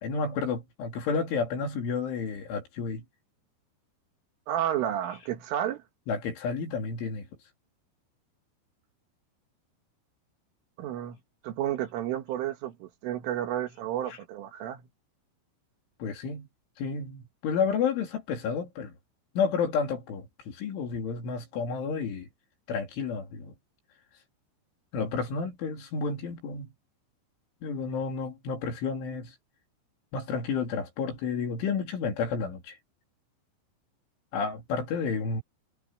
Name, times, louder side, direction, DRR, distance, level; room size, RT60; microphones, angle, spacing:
voice 1, 0.0-3.0 6.1-7.3 14.1-14.2 16.0-16.5 16.8-18.9 19.4-22.3 22.7-23.5 24.9-26.7 27.6-29.4 30.1-32.8 34.3-35.4, left 5 dB, 75° left, 5.7 m, -31 dB
voice 2, 4.5-5.8 10.8-11.2 11.4-14.8, right 11 dB, 90° right, 4.5 m, -31 dB
omnidirectional pair, 5.5 m